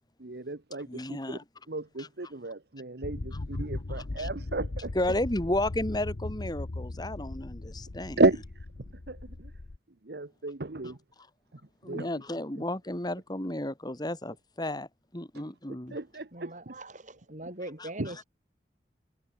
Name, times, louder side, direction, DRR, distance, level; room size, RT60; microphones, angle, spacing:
voice 1, 0.2-1.4 1.7-4.9 8.2-8.4 9.1-9.5 10.0-11.0 11.8-12.1 15.3-15.5 15.9-16.7 18.0-18.1, right 2 dB, 65° right, 1.2 m, -32 dB
voice 2, 0.9-1.4 2.0-2.1 4.2-4.3 4.9-8.2 11.8-14.9 15.1-16.0 17.8-17.9, left 1 dB, 25° left, 2.6 m, -32 dB
sound 1, 3.0-9.8, left 2 dB, 65° left, 0.9 m, -38 dB
voice 3, 16.3-18.2, right 1 dB, 45° right, 6.2 m, -41 dB
head